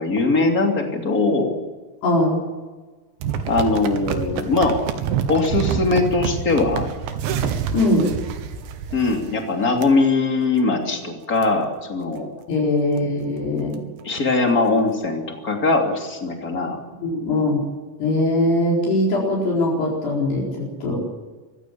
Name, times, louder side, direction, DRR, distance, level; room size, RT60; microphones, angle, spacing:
voice 1, 0.0-1.5 3.5-4.8 5.3-6.9 8.9-12.3 14.0-16.8, left 3 dB, 25° left, 2 dB, 2.6 m, -21 dB
voice 2, 2.0-2.4 7.7-8.1 12.5-13.8 17.0-17.6 18.0-21.0, left 1 dB, 65° left, -3 dB, 6.4 m, -21 dB
sound 1, 3.2-9.4 9.8-9.9 10.4-10.6 11.0-11.1 11.4-11.5 12.0-12.2 12.6-12.7 13.0-13.1 13.4-14.2 14.8-14.9, right 7 dB, 90° right, 3.8 m, -27 dB
24.5 x 15.5 x 8.5 m, 1.3 s
omnidirectional pair, 5.2 m